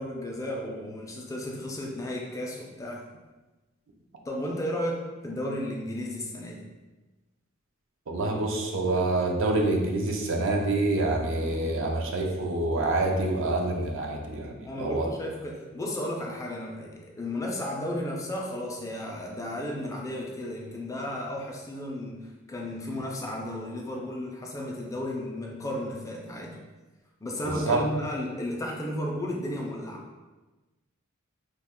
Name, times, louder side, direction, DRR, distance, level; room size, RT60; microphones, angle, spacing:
voice 1, 0.0-3.0 4.3-6.6 14.6-26.6 27.2-30.0, left 1 dB, 15° left, -1 dB, 0.3 m, -34 dB
voice 2, 8.1-15.1 27.4-27.8, right 2 dB, 65° right, 1 dB, 0.5 m, -27 dB
2.7 x 2.2 x 3.5 m, 1.2 s
head